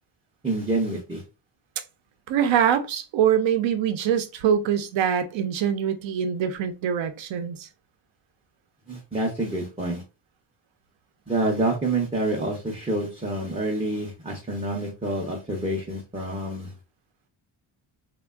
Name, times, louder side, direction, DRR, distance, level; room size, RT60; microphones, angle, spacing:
voice 1, 0.4-1.2 8.9-10.0 11.3-16.7, right 2 dB, 15° right, 0.4 m, -27 dB
voice 2, 2.3-7.7, right 8 dB, 70° right, 0.6 m, -24 dB
3.3 x 2.2 x 2.2 m
cardioid pair, 130°, 49 cm